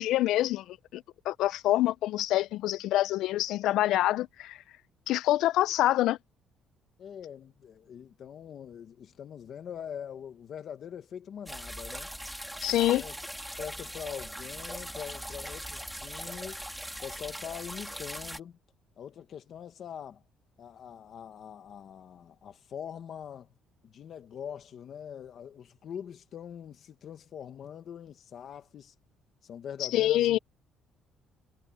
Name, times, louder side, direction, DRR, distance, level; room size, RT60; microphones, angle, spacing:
voice 1, 0.0-4.6 5.1-6.2 12.6-13.0 29.9-30.4, left 14 dB, 75° left, 0.5 m, -26 dB
voice 2, 7.0-12.1 12.7-13.2 13.5-16.6 17.0-18.6 19.0-20.2 20.6-23.5 23.8-28.9 29.4-30.4, left 8 dB, 45° left, 1.5 m, -43 dB
sound 1, 11.5-18.4, equal, ahead, 2.5 m, -40 dB
cardioid pair, 165°, 0 cm